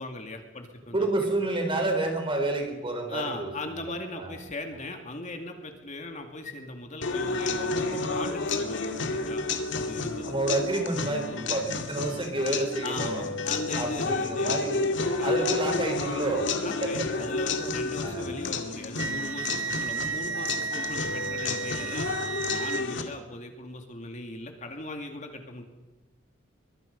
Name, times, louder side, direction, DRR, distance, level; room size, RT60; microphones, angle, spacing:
voice 1, 0.0-1.3 3.1-9.4 9.7-10.3 12.8-14.6 15.2-15.7 16.6-22.1 22.5-25.6, left 2 dB, 40° left, 4 dB, 2.4 m, -39 dB
voice 2, 0.9-3.8 4.1-4.3 10.2-13.3 13.7-14.9 15.2-16.5 16.8-16.9 18.0-18.5, right 2 dB, 25° right, 4 dB, 4.1 m, -29 dB
sound 1, 7.0-23.0, left 3 dB, 65° left, 2.2 m, -31 dB
Wind instrument woodwind instrument, 18.9-22.8, right 5 dB, 75° right, 1.1 m, -33 dB
23.5 x 23.0 x 5.4 m, 1.1 s
head